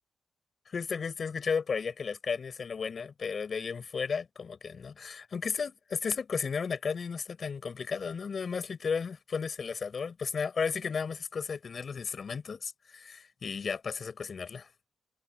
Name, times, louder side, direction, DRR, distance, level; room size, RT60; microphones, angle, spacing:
voice 1, 0.7-14.7, left 5 dB, 35° left, 5.3 m, -34 dB
wide cardioid pair, 155°, 0 cm